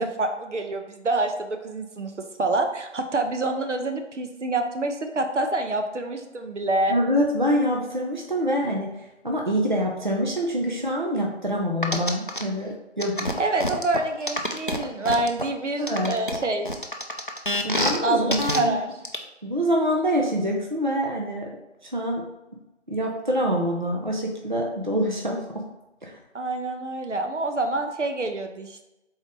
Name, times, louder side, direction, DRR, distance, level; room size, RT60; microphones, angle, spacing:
voice 1, 0.0-2.1 2.4-7.0 13.4-16.8 18.0-19.0 26.3-28.8, right 2 dB, 75° right, 5 dB, 0.8 m, -27 dB
voice 2, 6.9-8.9 9.2-13.3 15.8-16.1 17.6-18.8 19.4-21.5 21.9-22.2 22.9-25.6 26.0-26.2, equal, 40° right, 0 dB, 0.6 m, -25 dB
sound 1, 11.8-12.4 13.0-15.4 15.9-18.0 18.3-18.6 19.0-19.2, left 1 dB, 45° left, 0.4 m, -26 dB
4.0 x 3.9 x 3.3 m, 0.96 s
figure-of-eight pair, 180°, 36 cm